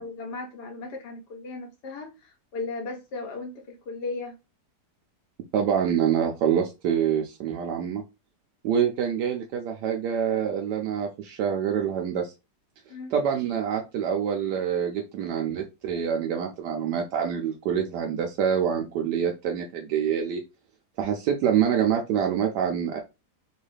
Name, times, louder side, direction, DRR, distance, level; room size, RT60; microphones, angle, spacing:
voice 1, 0.0-4.3 12.9-13.1, left 3 dB, 80° left, 1.6 m, -36 dB
voice 2, 5.5-8.0 8.6-12.3 13.1-20.4 21.0-23.0, right 8 dB, 85° right, 1.2 m, -26 dB
3.6 x 2.3 x 3.2 m
omnidirectional pair, 1.8 m